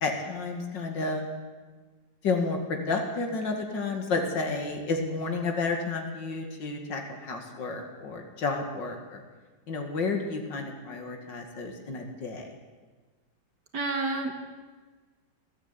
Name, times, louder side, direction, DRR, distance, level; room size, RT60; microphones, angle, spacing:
voice 1, 0.0-1.3 2.2-9.2 9.7-12.5, left 3 dB, 80° left, 3 dB, 2.8 m, -31 dB
voice 2, 13.7-14.3, right 3 dB, 65° right, 3 dB, 2.4 m, -29 dB
23.0 x 13.5 x 8.5 m, 1.4 s
omnidirectional pair, 1.9 m